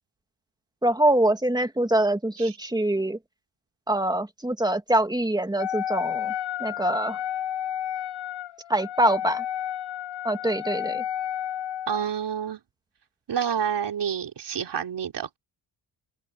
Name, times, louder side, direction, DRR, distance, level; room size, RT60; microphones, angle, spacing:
voice 1, 0.8-3.2 3.9-6.3 6.6-7.2 8.7-9.4 10.2-11.0, right 1 dB, 10° right, 2.2 m, -24 dB
Wind instrument woodwind instrument, 5.6-12.0, left 11 dB, 75° left, 7.2 m, -31 dB
voice 2, 11.9-12.6 13.3-15.4, right 8 dB, 60° right, 4.0 m, -28 dB
open air
cardioid pair, 105°, 47 cm